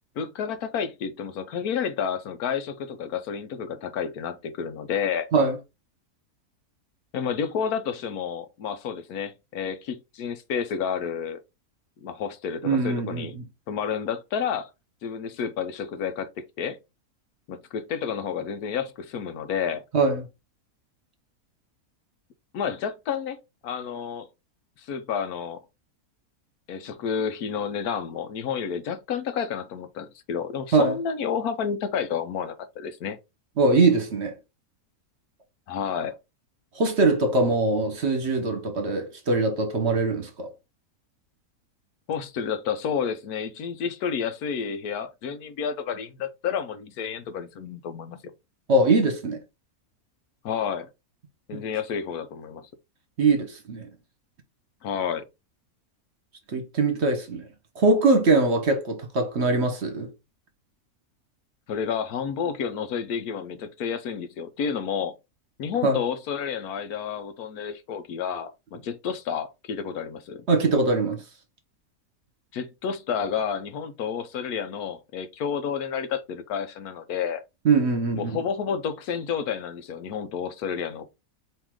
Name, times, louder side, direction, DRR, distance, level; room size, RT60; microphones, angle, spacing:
voice 1, 0.2-5.3 7.1-11.4 12.0-13.3 13.7-14.7 15.0-16.8 17.5-19.8 22.5-23.4 23.6-24.3 24.8-25.6 26.7-33.2 35.7-36.2 42.1-48.3 50.4-50.9 51.5-52.6 54.8-55.2 61.7-65.1 65.6-70.5 72.5-77.4 78.1-81.1, left 7 dB, 80° left, 1.2 m, -30 dB
voice 2, 12.6-13.4 19.9-20.2 30.7-31.0 33.6-34.3 36.7-40.5 48.7-49.4 51.5-51.6 53.2-53.9 56.5-57.5 57.7-60.1 65.8-66.0 70.5-71.2 77.6-78.3, right 3 dB, 50° right, 1.2 m, -22 dB
4.6 x 3.2 x 3.6 m
omnidirectional pair, 1.6 m